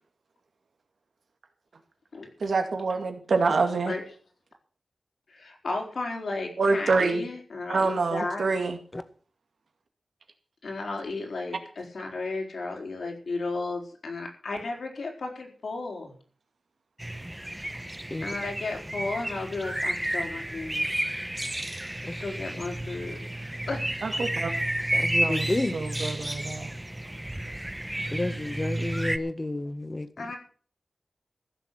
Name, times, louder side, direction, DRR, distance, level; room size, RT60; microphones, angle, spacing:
voice 1, 2.4-3.9 6.6-7.2 7.7-8.8 24.0-24.5 25.2-25.5 25.7-26.7, right 4 dB, 90° right, 2.2 m, -26 dB
voice 2, 5.3-8.5 10.6-16.1 18.2-20.9 22.0-23.3 23.7-24.1 30.2-30.4, left 3 dB, 85° left, 4.5 m, -34 dB
sound 1, 17.0-29.2, right 1 dB, 10° right, 0.9 m, -31 dB
voice 3, 24.9-25.7 28.1-30.3, left 2 dB, 30° left, 1.5 m, -30 dB
15.0 x 6.9 x 8.2 m
wide cardioid pair, 65°, 0 cm